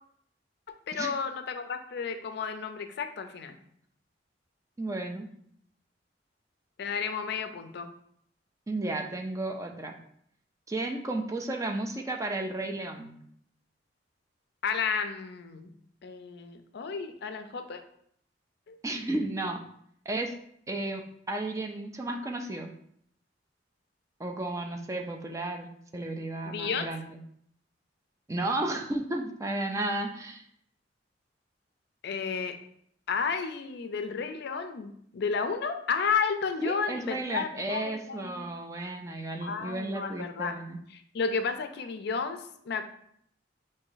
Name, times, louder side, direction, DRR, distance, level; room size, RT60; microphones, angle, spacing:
voice 1, 0.9-3.6 6.8-7.9 14.6-15.7 16.0-17.8 18.7-18.8 26.5-26.9 32.0-32.6 33.1-38.5 39.4-40.5 40.9-42.8, left 5 dB, 60° left, 8 dB, 0.4 m, -32 dB
voice 2, 4.8-5.3 8.7-9.9 10.7-13.1 18.8-19.6 20.1-20.3 20.7-22.7 24.2-27.2 28.3-30.4 36.6-40.8, right 2 dB, 15° right, 3 dB, 0.4 m, -33 dB
3.9 x 2.6 x 3.9 m, 0.67 s
head